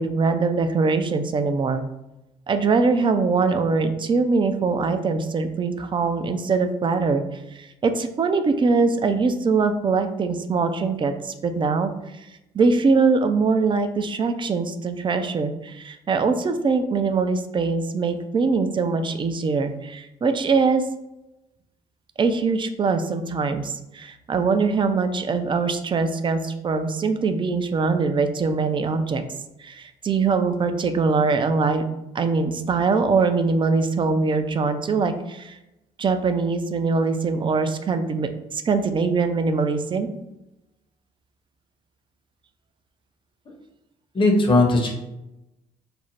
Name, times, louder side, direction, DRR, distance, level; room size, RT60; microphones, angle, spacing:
voice 1, 0.0-1.8 2.5-12.3 12.5-20.8 22.2-29.2 29.6-31.8 32.1-35.6 36.0-40.1, right 4 dB, 25° right, 8 dB, 0.3 m, -22 dB
voice 2, 44.1-44.9, left 2 dB, 25° left, 1 dB, 0.7 m, -18 dB
2.5 x 2.0 x 3.2 m, 0.91 s
hypercardioid pair, 50°, 18 cm